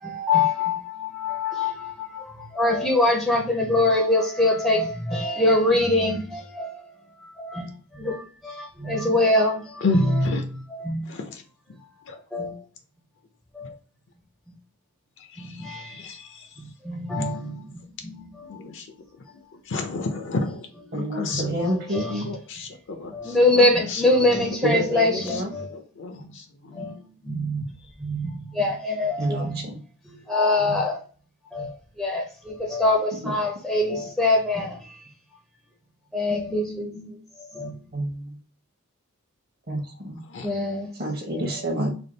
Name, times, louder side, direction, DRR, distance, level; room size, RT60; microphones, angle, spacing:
voice 1, 0.0-6.8 7.2-7.7 7.9-9.8 10.8-11.1 12.3-12.6 13.5-13.7 15.4-16.0 16.6-18.3 21.3-22.0 23.1-25.7 26.2-26.3 26.7-27.6 28.0-29.6 30.1-31.0 31.5-35.0 36.1-37.1 37.5-37.8 40.4-40.9, left 2 dB, ahead, 0.5 m, -24 dB
voice 2, 9.8-10.4 11.0-11.4 11.7-11.8 12.1-12.2 13.6-13.7 15.2-16.6 17.2-17.3 18.4-18.9 19.2-19.3 19.5-20.7 20.9-21.5 22.0-24.4 24.9-26.9 40.2-40.5, left 3 dB, 55° left, 0.5 m, -32 dB
voice 3, 20.9-22.3 24.6-25.5 29.2-29.8 33.2-33.3 33.9-34.1 37.9-38.4 39.7-40.2 40.9-41.9, right 1 dB, 45° right, 0.9 m, -29 dB
3.5 x 2.3 x 3.8 m
head